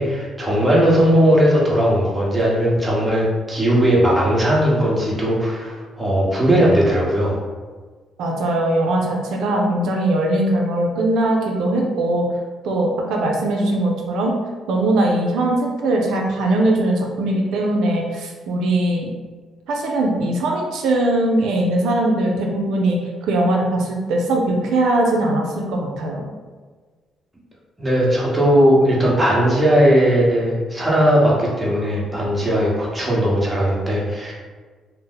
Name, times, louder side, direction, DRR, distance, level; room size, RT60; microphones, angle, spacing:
voice 1, 0.0-7.4 27.8-34.3, equal, 15° right, -5 dB, 1.0 m, -18 dB
voice 2, 8.2-12.3 12.6-14.4 14.7-19.1 19.7-26.2, right 1 dB, 85° right, 0 dB, 0.4 m, -20 dB
2.6 x 2.0 x 3.8 m, 1.4 s
cardioid pair, 90°, 0 cm